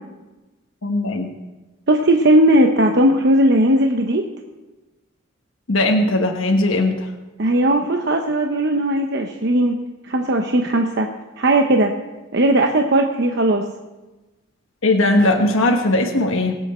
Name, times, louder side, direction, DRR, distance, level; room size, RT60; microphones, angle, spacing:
voice 1, 0.8-1.3 5.7-7.1 14.8-16.5, left 2 dB, 75° left, 3 dB, 1.3 m, -18 dB
voice 2, 1.9-4.2 7.4-9.8 10.0-11.1 11.4-11.9 12.3-13.6, right 1 dB, 55° right, 3 dB, 0.9 m, -17 dB
23.5 x 8.0 x 4.3 m, 1.1 s
head